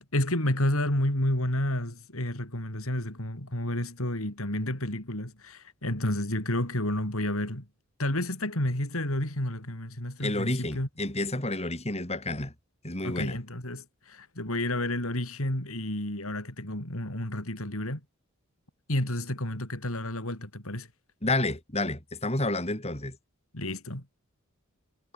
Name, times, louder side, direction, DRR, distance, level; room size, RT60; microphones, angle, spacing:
voice 1, 0.0-7.6 8.0-10.9 13.0-18.0 18.9-20.9 23.5-24.0, left 1 dB, 70° left, 5.2 m, -30 dB
voice 2, 10.2-12.5 12.8-13.4 21.2-23.2, left 2 dB, 30° left, 3.9 m, -30 dB
head